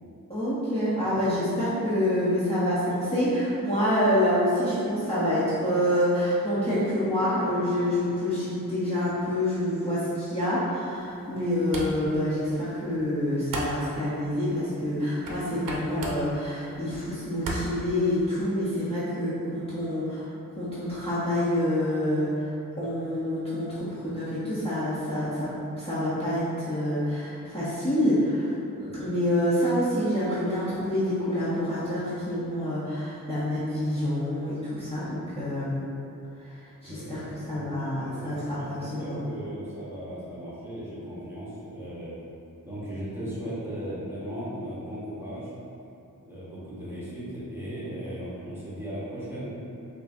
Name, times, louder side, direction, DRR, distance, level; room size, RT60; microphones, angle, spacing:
voice 1, 0.3-20.3 20.6-22.5 22.8-35.9 36.4-37.2 37.5-39.2, left 1 dB, 15° left, -12 dB, 0.9 m, -27 dB
sound 1, 10.9-18.5, right 1 dB, 65° right, 0.6 m, -39 dB
voice 2, 36.8-42.2 42.7-45.5 46.2-49.7, equal, 5° right, -11 dB, 1.1 m, -37 dB
5.3 x 2.7 x 2.6 m, 2.8 s
wide cardioid pair, 115°, 35 cm